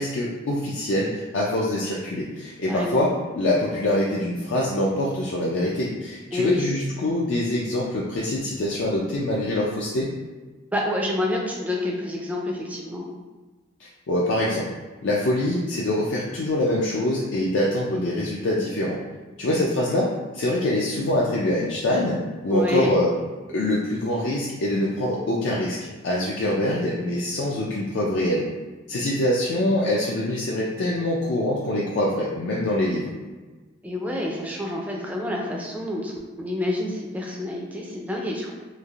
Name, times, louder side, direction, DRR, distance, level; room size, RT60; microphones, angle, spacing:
voice 1, 0.0-10.1 13.8-14.7 15.0-19.0 19.4-22.2 22.4-23.1 23.5-25.8 26.0-28.5 28.9-33.1, left 1 dB, 70° left, -4 dB, 0.4 m, -24 dB
voice 2, 2.7-3.0 6.3-6.7 10.7-13.1 22.5-22.9 33.8-38.5, left 1 dB, 10° right, -1 dB, 0.3 m, -28 dB
3.1 x 2.5 x 2.4 m, 1.3 s
head